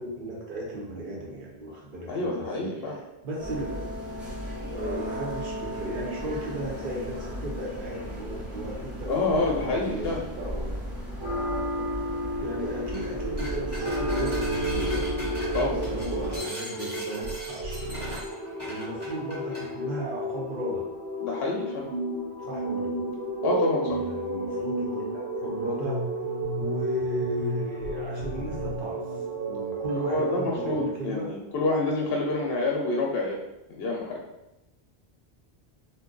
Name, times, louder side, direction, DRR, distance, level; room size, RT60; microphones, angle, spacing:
voice 1, 0.0-3.8 4.8-10.7 12.4-17.9 18.6-20.9 22.4-22.9 23.9-26.0 26.6-29.0 29.5-31.3, right 1 dB, 55° right, -3 dB, 1.0 m, -35 dB
voice 2, 2.1-3.0 9.1-10.2 15.5-15.8 21.2-21.9 23.4-24.0 29.9-33.4 33.7-34.2, left 2 dB, 70° left, -1 dB, 0.8 m, -27 dB
sound 1, 3.4-16.4, left 1 dB, ahead, 0.7 m, -33 dB
sound 2, 12.8-13.1 13.4-19.7, equal, 25° right, 1.0 m, -40 dB
sound 3, 12.8-30.8, right 1 dB, 80° right, 1.1 m, -32 dB
2.6 x 2.2 x 3.7 m, 0.94 s
omnidirectional pair, 1.1 m